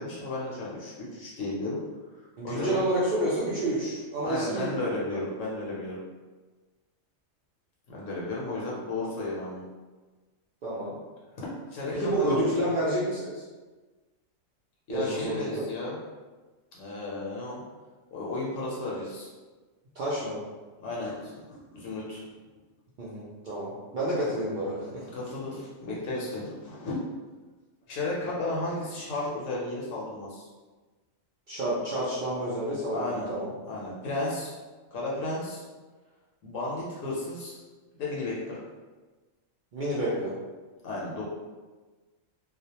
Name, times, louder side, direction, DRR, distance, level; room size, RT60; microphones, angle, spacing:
voice 1, 0.0-1.8 2.2-2.8 4.2-6.0 7.9-9.6 11.4-12.4 14.9-16.0 16.7-17.6 18.1-19.3 20.8-22.2 25.1-27.0 27.9-30.5 32.9-33.3 33.7-34.5 34.9-35.6 36.4-37.6 38.0-38.6 40.8-41.2, left 2 dB, 75° left, -5 dB, 0.9 m, -33 dB
voice 2, 2.4-4.7 10.6-10.9 11.9-13.4 14.9-15.7 20.0-20.4 23.0-25.0 31.5-33.5 39.7-40.3, right 1 dB, 70° right, -8 dB, 0.4 m, -29 dB
2.3 x 2.1 x 2.8 m, 1.3 s
omnidirectional pair, 1.4 m